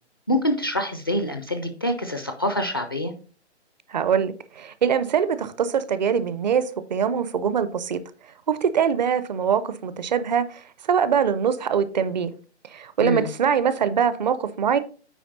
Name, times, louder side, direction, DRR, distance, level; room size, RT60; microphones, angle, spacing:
voice 1, 0.3-3.1 13.0-13.3, left 1 dB, 20° left, 0.3 m, -25 dB
voice 2, 3.9-6.6 6.9-8.0 8.5-12.3 12.7-14.8, right 7 dB, 40° right, 0.6 m, -23 dB
9.1 x 4.2 x 4.0 m
figure-of-eight pair, 135°, 34 cm